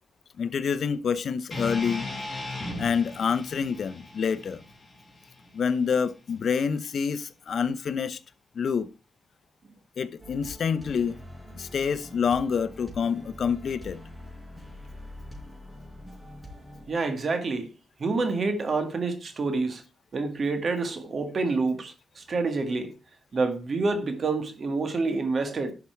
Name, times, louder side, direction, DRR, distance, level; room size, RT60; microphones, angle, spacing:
voice 1, 0.4-2.1 2.8-4.6 5.5-8.2 8.5-8.9 10.0-11.2 11.5-14.0, left 6 dB, 65° left, 0.7 m, -27 dB
sound 1, 1.5-5.7, left 2 dB, 25° left, 4.7 m, -37 dB
sound 2, 10.2-17.4, left 1 dB, 10° right, 4.5 m, -45 dB
voice 2, 16.9-17.7 18.0-19.8 20.1-22.9 23.3-25.7, right 3 dB, 50° right, 1.9 m, -27 dB
11.5 x 5.9 x 4.6 m
cardioid pair, 100°, 0 cm